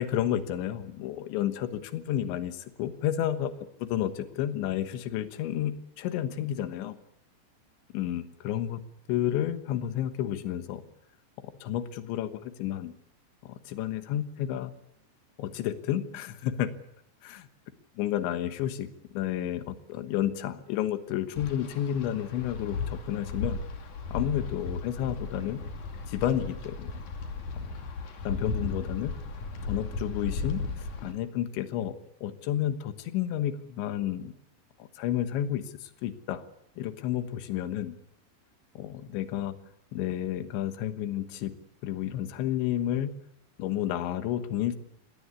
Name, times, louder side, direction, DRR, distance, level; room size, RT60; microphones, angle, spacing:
voice 1, 0.0-3.5 3.8-7.0 7.9-8.8 9.1-10.8 11.6-12.9 13.4-14.7 15.4-16.7 17.2-17.5 18.0-18.9 19.1-23.6 24.1-25.6 26.1-26.9 27.6-27.8 28.3-29.1 29.6-34.3 34.8-36.4 36.8-38.0 38.8-39.5 39.9-41.5 41.8-43.1 43.6-44.8, left 11 dB, 85° left, 11 dB, 3.6 m, -31 dB
Wind, 21.4-31.1, left 3 dB, 50° left, 3.6 m, -36 dB
21.0 x 18.0 x 8.4 m, 0.80 s
omnidirectional pair, 5.2 m